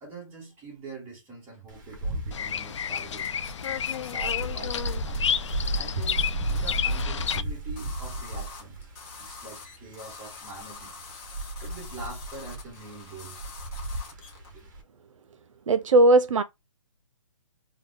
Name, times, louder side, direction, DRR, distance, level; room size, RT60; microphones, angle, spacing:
voice 1, 0.0-3.3 3.9-5.3 5.7-8.9 9.2-11.0 11.6-13.4 14.5-14.7, right 3 dB, 10° right, 1.3 m, -44 dB
Wind, 1.7-14.8, right 1 dB, 35° right, 1.0 m, -34 dB
Bird vocalization bird call bird song, 2.3-7.4, left 8 dB, 65° left, 0.4 m, -30 dB
sound 1, 3.2-4.5 4.7-7.0 7.3-7.4 7.8-14.5, left 4 dB, 15° left, 0.7 m, -46 dB
voice 2, 15.7-16.4, right 2 dB, 75° right, 0.5 m, -18 dB
3.5 x 2.2 x 3.6 m
hypercardioid pair, 160°, 17 cm